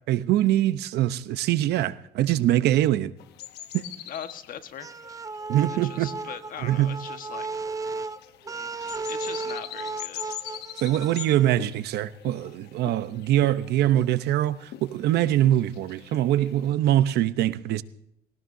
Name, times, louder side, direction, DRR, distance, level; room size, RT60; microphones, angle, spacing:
voice 1, 0.1-3.1 3.7-3.8 5.5-6.1 6.6-7.0 10.8-17.8, right 13 dB, 75° right, 0.8 m, -23 dB
sound 1, 3.2-16.7, left 12 dB, 75° left, 1.0 m, -43 dB
voice 2, 4.1-4.9 5.7-7.6 9.1-10.4, left 8 dB, 55° left, 1.4 m, -40 dB
sound 2, 4.8-11.5, right 3 dB, 20° right, 0.6 m, -35 dB
20.5 x 18.5 x 2.7 m
cardioid pair, 110°, 17 cm